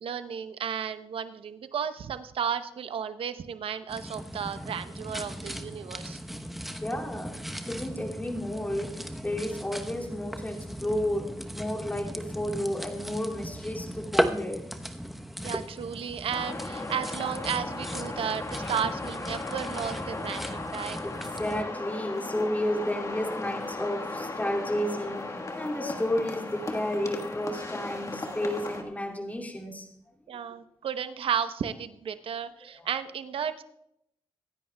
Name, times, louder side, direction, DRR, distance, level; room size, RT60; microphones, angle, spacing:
voice 1, 0.0-6.2 15.4-21.0 30.3-33.6, right 8 dB, 70° right, 11 dB, 0.8 m, -33 dB
sound 1, 3.9-21.6, equal, ahead, 0.9 m, -36 dB
voice 2, 6.8-14.7 20.8-29.9 32.8-32.9, left 1 dB, 15° left, -1 dB, 2.4 m, -32 dB
FX - pasos en estacion de autobuses, 16.3-28.8, left 2 dB, 35° left, 1.4 m, -36 dB
25.0 x 10.0 x 2.3 m, 0.79 s
cardioid pair, 70°, 10 cm